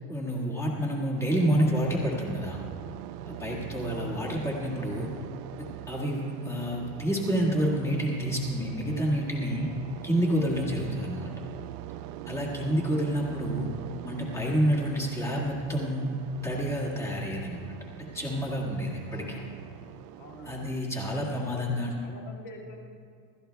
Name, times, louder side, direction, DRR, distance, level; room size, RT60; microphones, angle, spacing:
voice 1, 0.1-2.6 3.2-5.1 5.6-9.7 10.0-11.3 12.3-13.7 14.0-16.1 16.4-17.6 18.1-19.4 20.4-22.0, equal, 5° left, -3 dB, 1.7 m, -28 dB
sound 1, 1.2-20.8, right 12 dB, 75° right, 0.6 m, -42 dB
voice 2, 3.9-4.3 12.6-12.8 19.1-19.8 20.2-20.6 21.1-22.8, left 1 dB, 25° left, -2 dB, 2.3 m, -48 dB
27.5 x 13.5 x 2.3 m, 2.2 s
supercardioid pair, 170°, 47 cm